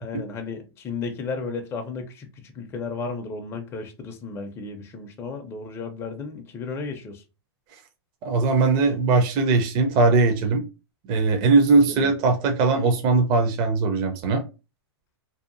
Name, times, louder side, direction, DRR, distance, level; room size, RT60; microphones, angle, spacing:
voice 1, 0.0-7.2 11.9-12.1, left 4 dB, 20° left, 0.4 m, -34 dB
voice 2, 8.2-10.6 11.1-14.4, right 3 dB, 35° right, 0.5 m, -20 dB
2.7 x 2.3 x 2.5 m
hypercardioid pair, 130°, 14 cm